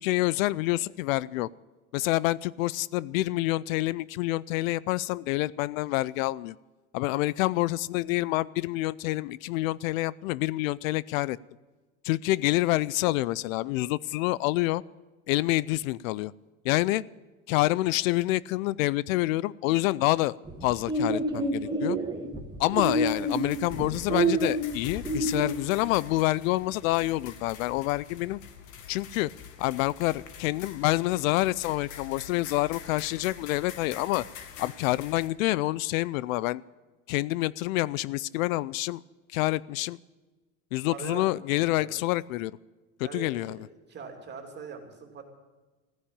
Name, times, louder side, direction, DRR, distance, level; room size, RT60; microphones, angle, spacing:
voice 1, 0.0-1.5 1.9-6.6 6.9-11.4 12.0-14.8 15.3-16.3 16.6-17.0 17.5-20.3 20.6-22.0 22.6-28.4 28.9-29.3 29.6-34.2 34.6-36.6 37.1-39.0 39.3-40.0 40.7-42.6 43.0-43.7, left 18 dB, 80° left, 21 dB, 0.5 m, -27 dB
sound 1, 20.5-25.5, right 2 dB, 10° right, 1.7 m, -28 dB
sound 2, 22.8-35.3, left 8 dB, 50° left, 1.8 m, -46 dB
voice 2, 40.9-41.2 41.7-42.0 43.0-45.2, right 6 dB, 25° right, 4 dB, 2.9 m, -42 dB
15.5 x 10.0 x 8.7 m, 1.2 s
supercardioid pair, 140°, 40 cm